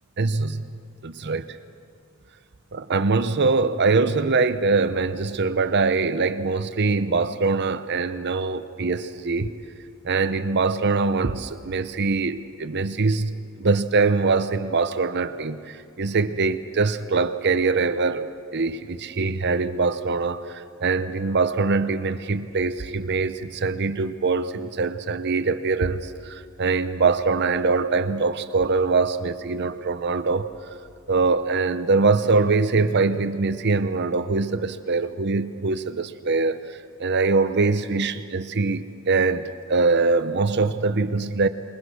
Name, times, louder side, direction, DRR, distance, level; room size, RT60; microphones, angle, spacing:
voice 1, 0.2-0.6 1.0-1.6 2.7-9.5 10.0-30.5 31.1-41.5, right 4 dB, 55° right, 11 dB, 0.8 m, -23 dB
28.0 x 21.5 x 6.4 m, 2.4 s
head